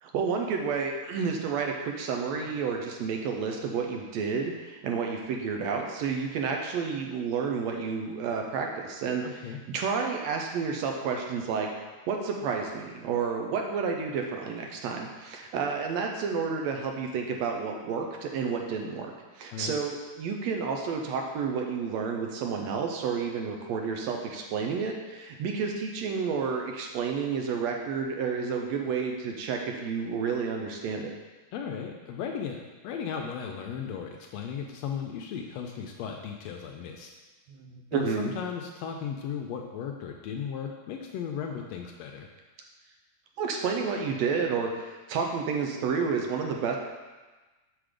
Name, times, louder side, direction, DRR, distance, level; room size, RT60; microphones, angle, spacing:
voice 1, 0.0-9.2 9.7-11.7 12.1-31.1 37.6-38.3 43.4-46.8, right 5 dB, 75° right, 2 dB, 1.8 m, -30 dB
voice 2, 9.2-9.6 19.5-19.8 31.5-37.1 37.9-42.3, left 7 dB, 80° left, 2 dB, 1.6 m, -36 dB
6.1 x 6.0 x 5.0 m, 1.2 s
omnidirectional pair, 3.3 m